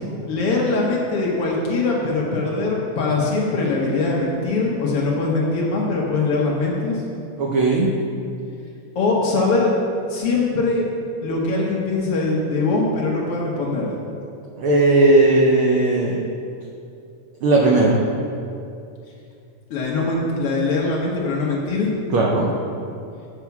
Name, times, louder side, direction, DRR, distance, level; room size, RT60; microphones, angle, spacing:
voice 1, 0.3-7.0 8.9-9.7 10.1-10.9 11.2-13.9 19.7-21.9, left 3 dB, 60° left, -3 dB, 1.7 m, -22 dB
voice 2, 7.4-8.0 14.6-16.2 17.4-18.0 22.1-22.5, right 2 dB, 85° right, -2 dB, 1.1 m, -16 dB
8.3 x 4.9 x 5.8 m, 2.5 s
omnidirectional pair, 3.3 m